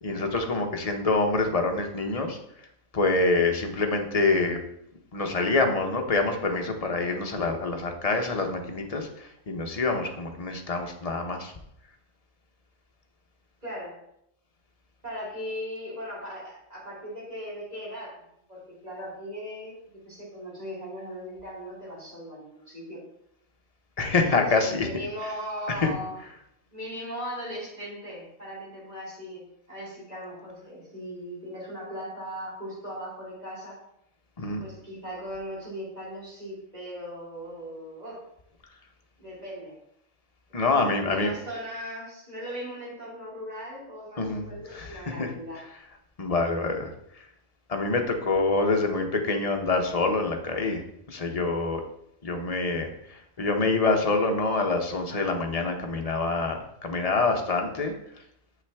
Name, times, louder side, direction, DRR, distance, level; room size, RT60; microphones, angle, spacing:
voice 1, 0.0-2.4 2.9-4.6 5.1-11.5 24.0-24.9 25.2-25.3 25.7-25.9 26.2-26.4 34.4-34.7 40.5-41.3 44.2-45.3 45.5-45.9 46.2-46.9 47.2-47.3 47.7-51.8 52.2-57.9, left 3 dB, 35° left, 3 dB, 0.8 m, -26 dB
voice 2, 13.6-14.0 15.0-18.2 18.5-19.8 20.0-23.0 24.5-26.2 26.7-33.8 34.6-38.2 39.2-39.8 40.6-45.6, equal, 30° right, -7 dB, 3.0 m, -38 dB
7.5 x 5.8 x 3.5 m, 0.77 s
omnidirectional pair, 1.3 m